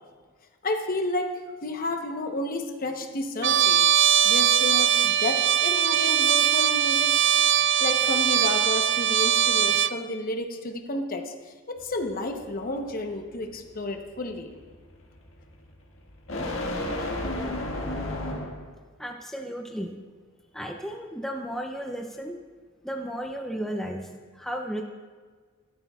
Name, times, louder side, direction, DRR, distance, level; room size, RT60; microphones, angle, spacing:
voice 1, 0.6-1.3 1.6-3.9 4.2-7.1 7.8-14.5, left 2 dB, 45° left, 5 dB, 0.9 m, -31 dB
Trumpet, 3.4-10.0, right 9 dB, 60° right, 0.4 m, -21 dB
sound 1, 11.8-18.7, left 1 dB, 70° left, 1.7 m, -34 dB
voice 2, 19.0-19.9 20.5-22.4 22.8-24.8, equal, ahead, 2 dB, 0.6 m, -34 dB
14.0 x 13.0 x 2.4 m, 1.5 s
head